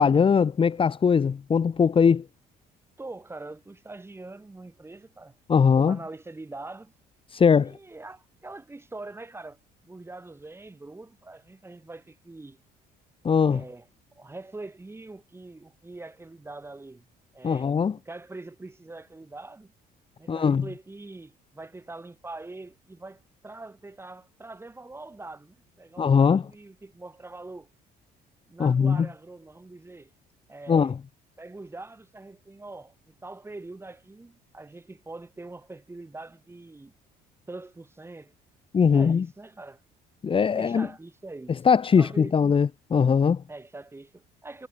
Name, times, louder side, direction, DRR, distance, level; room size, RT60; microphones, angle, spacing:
voice 1, 0.0-2.2 5.5-6.0 7.3-7.7 13.2-13.6 17.4-18.0 20.3-20.6 26.0-26.4 28.6-29.1 30.7-30.9 38.7-39.2 40.2-40.9 41.6-43.4, left 6 dB, 30° left, 1.4 m, -20 dB
voice 2, 3.0-5.4 5.7-6.9 7.5-12.6 13.5-13.9 14.2-17.1 17.3-17.7 18.1-19.7 20.2-27.7 28.5-30.1 30.5-30.9 31.4-36.9 37.5-38.3 38.8-39.8 40.5-41.6 42.0-42.3 43.5-44.7, right 2 dB, 15° right, 7.0 m, -43 dB
cardioid pair, 110°, 17 cm